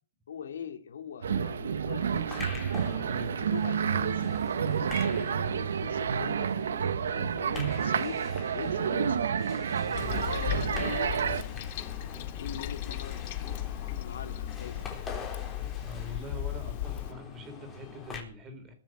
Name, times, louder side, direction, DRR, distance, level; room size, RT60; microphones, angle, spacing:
voice 1, 0.3-2.5 2.9-4.3 4.6-9.2 10.2-11.4 12.4-13.6 13.9-14.8, left 7 dB, 85° left, 6 dB, 2.7 m, -42 dB
sound 1, 1.2-11.4, right 7 dB, 85° right, 1.4 m, -29 dB
sound 2, 2.0-18.2, left 4 dB, 15° left, 4.1 m, -45 dB
voice 2, 3.1-3.4 9.8-10.7 15.8-18.7, left 1 dB, 15° right, 7 dB, 3.9 m, -44 dB
Toilet flush, 9.9-17.1, left 13 dB, 40° left, 1.5 m, -36 dB
21.5 x 7.5 x 7.9 m, 0.41 s
hypercardioid pair, 165°, 0 cm